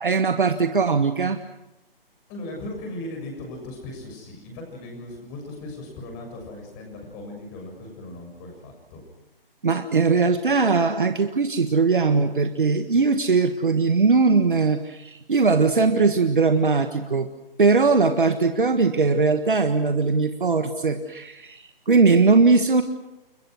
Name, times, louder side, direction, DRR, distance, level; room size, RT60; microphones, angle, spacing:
voice 1, 0.0-1.4 9.6-17.3 17.6-22.8, right 4 dB, 60° right, 8 dB, 1.6 m, -20 dB
voice 2, 2.3-9.0, left 2 dB, 20° left, 2 dB, 7.0 m, -38 dB
30.0 x 21.0 x 6.3 m, 0.96 s
figure-of-eight pair, 140°, 29 cm